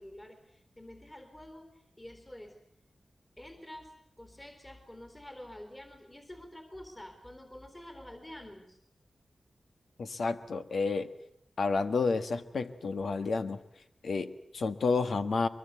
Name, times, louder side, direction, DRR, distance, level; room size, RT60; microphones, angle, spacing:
voice 1, 0.0-2.6 3.4-8.8, left 1 dB, 20° left, 6 dB, 3.9 m, -48 dB
voice 2, 10.0-11.1 11.6-13.6 14.0-15.5, left 4 dB, 85° left, 9 dB, 1.5 m, -30 dB
23.5 x 23.0 x 8.3 m, 0.72 s
wide cardioid pair, 70°, 0 cm